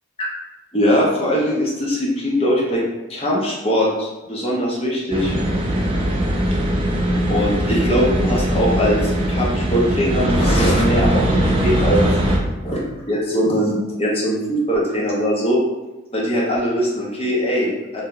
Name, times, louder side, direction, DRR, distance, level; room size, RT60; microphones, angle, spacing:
voice 1, 0.7-2.8 3.1-5.3 7.3-12.1 12.6-15.6 16.1-18.0, equal, 30° left, -4 dB, 0.6 m, -21 dB
sound 1, 5.1-12.4, right 1 dB, 25° right, 0.3 m, -20 dB
2.7 x 2.1 x 3.6 m, 1.1 s
head